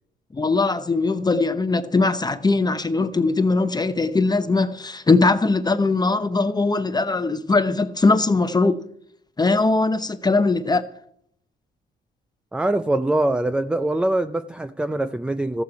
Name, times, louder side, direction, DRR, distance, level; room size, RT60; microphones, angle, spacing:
voice 1, 0.3-8.8 9.4-10.8, left 3 dB, 20° left, 0.7 m, -20 dB
voice 2, 12.5-15.6, right 1 dB, 5° right, 0.4 m, -23 dB
14.0 x 8.6 x 4.6 m
cardioid pair, 90°, 20 cm